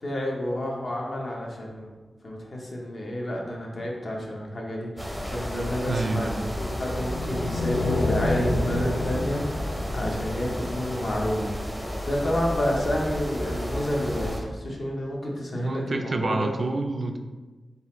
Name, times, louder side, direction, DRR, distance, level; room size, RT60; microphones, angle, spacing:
voice 1, 0.0-1.9 2.2-11.5 12.1-16.5, left 1 dB, 50° left, -2 dB, 0.7 m, -30 dB
sound 1, 5.0-14.4, equal, 5° left, 0.6 m, -32 dB
voice 2, 5.9-6.4 15.5-17.2, right 3 dB, 50° right, 4 dB, 0.3 m, -28 dB
sound 2, 6.6-11.0, left 2 dB, 65° left, 0.3 m, -30 dB
3.9 x 2.4 x 4.1 m, 1.2 s
wide cardioid pair, 130°, 0 cm